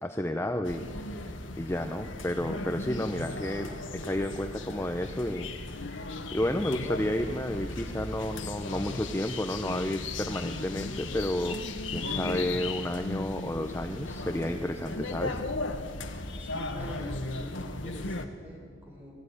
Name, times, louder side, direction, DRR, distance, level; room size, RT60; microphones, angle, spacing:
voice 1, 0.0-11.6 11.9-15.4, left 1 dB, 15° left, 5 dB, 0.7 m, -32 dB
sound 1, 0.6-18.3, left 2 dB, 80° left, 1.6 m, -36 dB
voice 2, 16.4-19.1, equal, 10° right, -2 dB, 5.7 m, -44 dB
23.5 x 15.0 x 10.0 m, 2.1 s
head